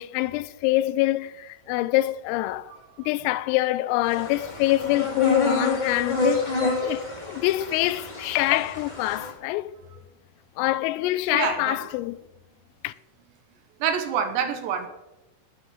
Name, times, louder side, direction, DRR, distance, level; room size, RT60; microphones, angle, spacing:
voice 1, 0.0-2.7 3.0-9.7 10.6-12.2 12.8-12.9, left 17 dB, 85° left, 3.2 m, -25 dB
sound 1, 4.1-9.3, left 2 dB, 35° left, 0.6 m, -28 dB
voice 2, 11.3-11.8 13.8-14.9, right 7 dB, 70° right, 2.9 m, -26 dB
19.5 x 7.0 x 5.4 m
omnidirectional pair, 5.9 m